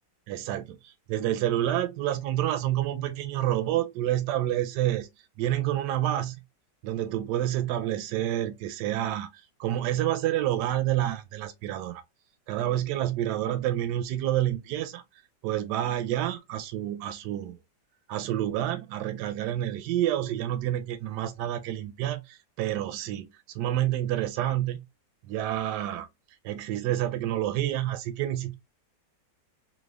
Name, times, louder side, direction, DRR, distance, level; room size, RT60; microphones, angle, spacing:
voice 1, 0.3-5.1 5.4-6.4 6.8-12.0 12.5-15.0 15.4-17.6 18.1-24.8 25.2-26.1 26.4-28.5, right 12 dB, 75° right, 1.1 m, -28 dB
3.4 x 2.3 x 3.3 m
omnidirectional pair, 1.9 m